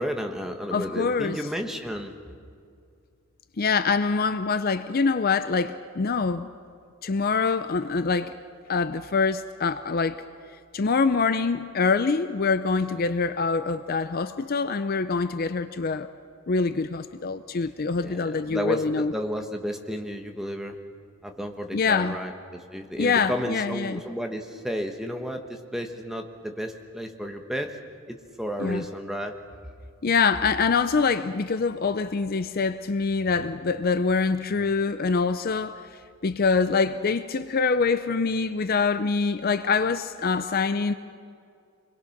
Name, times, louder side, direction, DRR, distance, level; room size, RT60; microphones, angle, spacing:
voice 1, 0.0-2.1 18.0-20.8 21.2-27.8 28.1-29.3, equal, ahead, 4 dB, 1.2 m, -32 dB
voice 2, 0.7-1.4 3.6-6.5 7.0-8.3 8.7-10.2 10.7-16.1 16.5-19.1 21.7-22.2 23.0-24.0 28.6-28.9 30.0-35.8 36.2-40.9, left 4 dB, 40° left, 11 dB, 0.5 m, -25 dB
26.0 x 21.5 x 5.9 m, 2.4 s
head